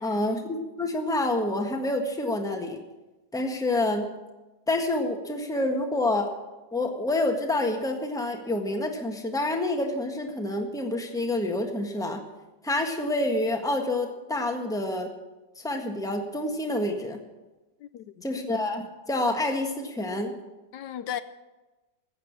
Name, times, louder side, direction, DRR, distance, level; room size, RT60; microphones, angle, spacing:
voice 1, 0.0-2.8 3.3-4.1 4.7-6.3 6.7-12.2 12.6-15.1 15.6-17.2 18.2-20.4, left 2 dB, ahead, 1.3 m, -28 dB
voice 2, 17.8-18.3 20.7-21.2, left 10 dB, 75° left, 1.2 m, -36 dB
15.0 x 8.2 x 8.6 m
omnidirectional pair, 1.9 m